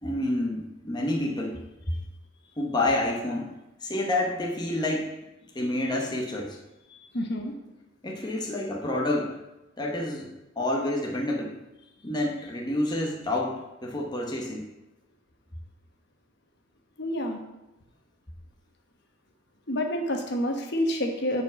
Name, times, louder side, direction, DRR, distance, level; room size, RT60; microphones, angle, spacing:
voice 1, 0.0-1.6 2.6-3.5 3.8-5.1 5.5-6.6 8.0-9.4 9.8-11.6 12.0-14.7, left 1 dB, 20° left, -1 dB, 1.0 m, -28 dB
voice 2, 7.1-7.5 17.0-17.4 19.7-21.4, left 1 dB, 55° left, 3 dB, 1.2 m, -28 dB
7.4 x 4.5 x 6.9 m, 0.98 s
head